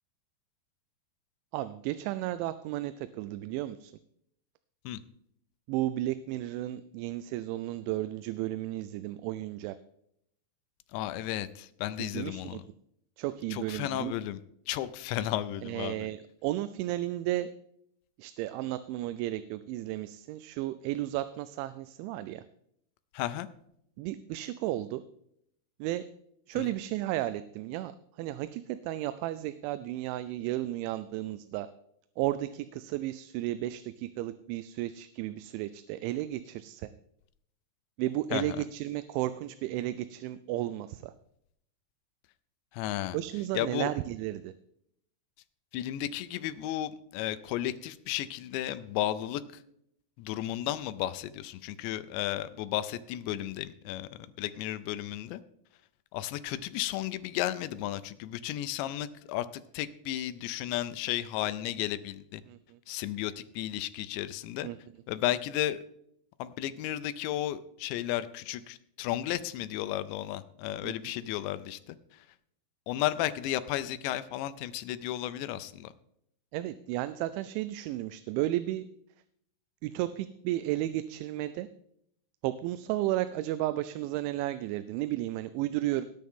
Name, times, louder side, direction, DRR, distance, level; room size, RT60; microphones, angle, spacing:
voice 1, 1.5-3.9 5.7-9.7 12.0-12.6 13.2-14.1 15.6-17.5 18.2-22.4 24.0-25.0 25.8-26.1 26.5-27.9 28.2-31.7 32.2-36.9 38.0-41.1 43.1-44.5 62.5-62.8 64.6-64.8 70.8-70.9 76.5-78.9 79.8-81.7 82.4-86.0, right 15 dB, 90° right, 13 dB, 3.0 m, -33 dB
voice 2, 10.9-12.6 13.5-16.1 23.1-23.5 26.6-26.7 38.3-38.6 42.7-43.2 43.5-43.9 45.7-49.4 50.2-54.1 54.4-55.4 56.1-59.5 59.7-62.4 62.9-64.7 65.1-65.8 66.4-72.3 72.9-75.9, left 13 dB, 80° left, 13 dB, 2.8 m, -33 dB
18.5 x 9.3 x 3.7 m, 0.72 s
omnidirectional pair, 5.3 m